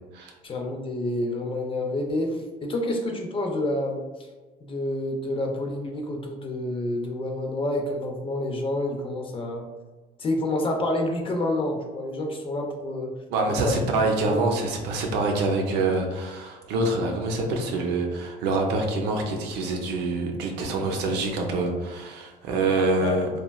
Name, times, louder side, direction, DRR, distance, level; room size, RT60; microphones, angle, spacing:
voice 1, 0.4-4.1 4.6-9.6 10.2-13.1 13.5-13.8 23.0-23.2, left 1 dB, 30° left, 2 dB, 0.4 m, -28 dB
voice 2, 13.3-23.3, right 2 dB, 85° right, 2 dB, 0.5 m, -26 dB
3.0 x 2.3 x 2.2 m, 1.3 s
cardioid pair, 110°, 17 cm